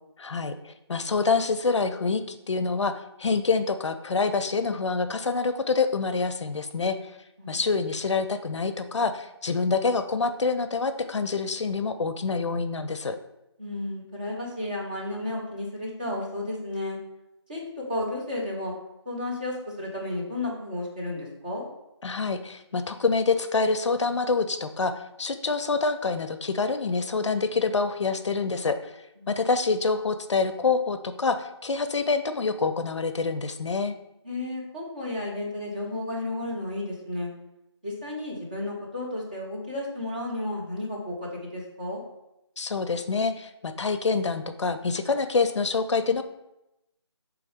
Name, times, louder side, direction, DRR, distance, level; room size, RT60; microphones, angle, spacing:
voice 1, 0.2-2.9 3.2-7.0 7.5-13.2 22.0-24.9 25.2-28.8 29.3-33.9 42.6-46.2, left 4 dB, 80° left, 10 dB, 0.4 m, -26 dB
voice 2, 13.6-17.0 17.5-17.6 17.9-18.7 19.1-21.7 29.2-29.4 34.2-37.3 37.8-42.0, left 1 dB, 20° right, -4 dB, 0.5 m, -33 dB
4.2 x 3.4 x 3.4 m, 0.89 s
figure-of-eight pair, 165°, 15 cm